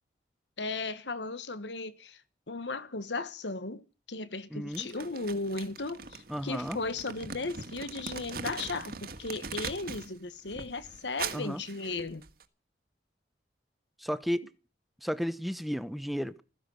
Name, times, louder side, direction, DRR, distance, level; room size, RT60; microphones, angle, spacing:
voice 1, 0.6-2.2 2.5-12.2, left 3 dB, 85° left, 1.3 m, -36 dB
voice 2, 4.5-4.9 6.3-6.8 11.3-11.6 14.0-14.4 15.0-16.4, equal, ahead, 0.8 m, -33 dB
Crumpling crinkling, 4.7-10.1 10.4-12.4, right 5 dB, 55° right, 1.7 m, -41 dB
15.5 x 14.5 x 6.4 m
head